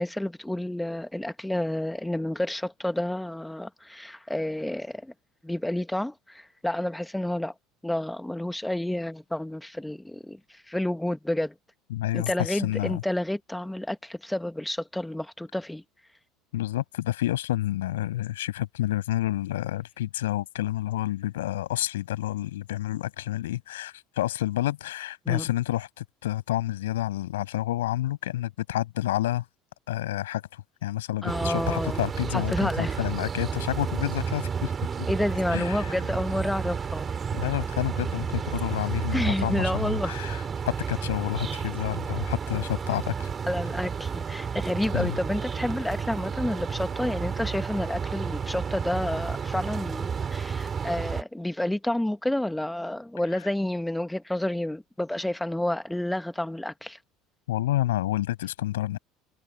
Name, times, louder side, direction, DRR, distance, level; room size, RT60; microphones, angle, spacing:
voice 1, 0.0-5.1 5.4-7.5 7.8-11.5 12.1-15.8 25.3-25.5 31.2-32.0 32.3-33.0 35.1-37.1 39.1-40.1 43.5-57.0, left 1 dB, 5° left, 1.7 m, -30 dB
voice 2, 11.9-13.0 16.5-29.5 29.9-34.7 35.5-35.8 37.3-40.4 40.7-43.3 44.9-45.2 57.5-59.0, left 14 dB, 70° left, 7.0 m, -29 dB
sound 1, 31.3-51.2, right 6 dB, 30° right, 6.2 m, -31 dB
figure-of-eight pair, 65°, 0 cm